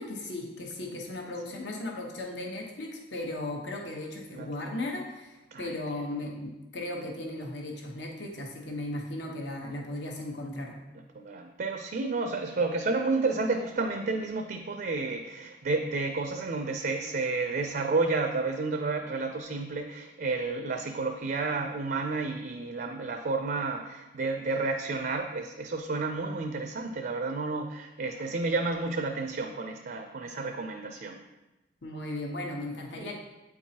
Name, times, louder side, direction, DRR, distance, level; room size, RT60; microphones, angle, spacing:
voice 1, 0.0-10.8 31.8-33.1, left 1 dB, 75° left, 0 dB, 1.1 m, -36 dB
voice 2, 11.2-31.2 33.0-33.1, right 3 dB, 55° right, 5 dB, 0.4 m, -31 dB
8.5 x 4.5 x 2.8 m, 1.0 s
head